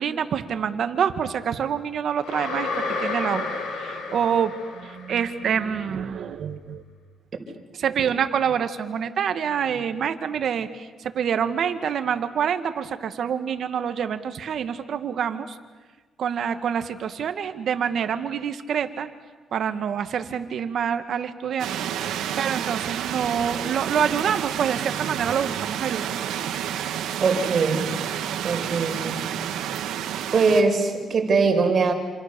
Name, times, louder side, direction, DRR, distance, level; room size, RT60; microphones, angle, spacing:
voice 1, 0.0-6.8 7.7-15.6 16.2-19.1 19.5-26.1 26.8-26.9, right 8 dB, 60° right, 9 dB, 1.9 m, -26 dB
sound 1, 2.2-5.3, left 4 dB, 90° left, 7.4 m, -31 dB
sound 2, 21.6-30.6, right 10 dB, 85° right, 2.0 m, -30 dB
voice 2, 27.2-27.9 28.4-29.2 30.3-31.9, right 4 dB, 45° right, 4 dB, 5.4 m, -21 dB
28.0 x 27.5 x 7.1 m, 1.3 s
cardioid pair, 90°, 0 cm